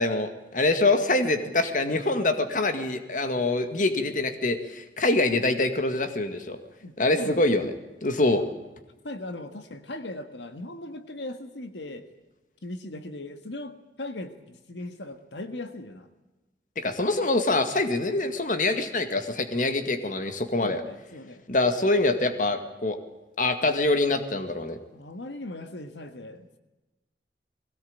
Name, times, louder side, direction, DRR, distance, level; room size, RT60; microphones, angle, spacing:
voice 1, 0.0-6.6 7.0-7.7 8.0-8.4 16.8-20.8 21.5-23.0 23.4-24.8, left 2 dB, 45° left, 9 dB, 2.0 m, -25 dB
voice 2, 6.8-7.6 9.0-12.0 12.6-16.1 20.6-21.4 24.9-26.6, left 1 dB, 85° left, 9 dB, 1.7 m, -39 dB
21.0 x 18.0 x 8.9 m, 1.1 s
head